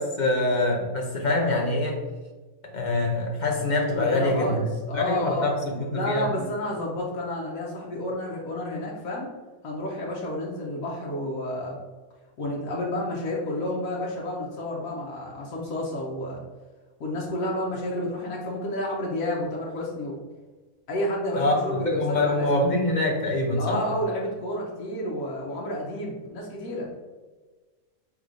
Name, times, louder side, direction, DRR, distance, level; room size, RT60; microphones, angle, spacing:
voice 1, 0.0-2.0 2.6-4.7 4.9-6.3 21.3-23.8, left 2 dB, 45° left, -1 dB, 0.6 m, -25 dB
voice 2, 4.0-5.5 5.9-9.3 9.6-11.8 12.4-16.4 17.0-20.2 20.9-22.6 23.6-26.9, left 1 dB, 75° left, -3 dB, 1.2 m, -30 dB
4.7 x 3.6 x 2.5 m, 1.3 s
omnidirectional pair, 1.5 m